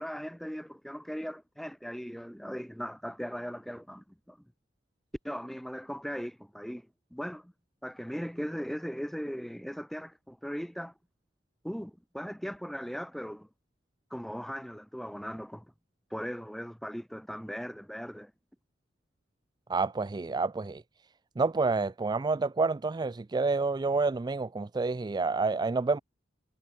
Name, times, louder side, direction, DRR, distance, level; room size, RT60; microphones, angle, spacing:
voice 1, 0.0-4.4 5.2-7.5 7.8-10.9 11.6-13.5 14.1-15.7 16.1-18.3, equal, ahead, 1.3 m, -38 dB
voice 2, 19.7-20.8 21.4-26.0, right 3 dB, 25° right, 0.4 m, -28 dB
head